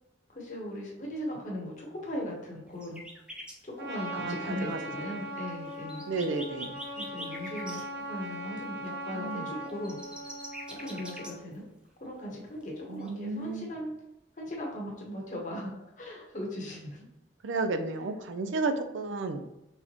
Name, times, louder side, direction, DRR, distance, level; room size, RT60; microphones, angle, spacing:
voice 1, 0.3-3.0 3.6-6.0 6.9-10.0 10.7-11.6 12.0-13.9 14.4-17.0, left 1 dB, 45° left, -2 dB, 1.0 m, -38 dB
sound 1, 2.8-3.5 5.0-5.1 5.3-7.8 9.6-11.5 13.0-13.1 13.5-13.6, equal, 5° right, 0.5 m, -43 dB
Trumpet, 3.8-11.4, right 1 dB, 60° right, 1.0 m, -40 dB
voice 2, 4.1-5.2 6.1-6.8 9.1-9.5 12.9-13.7 17.4-19.4, right 3 dB, 90° right, 8 dB, 0.5 m, -33 dB
4.4 x 3.4 x 3.0 m, 0.91 s
head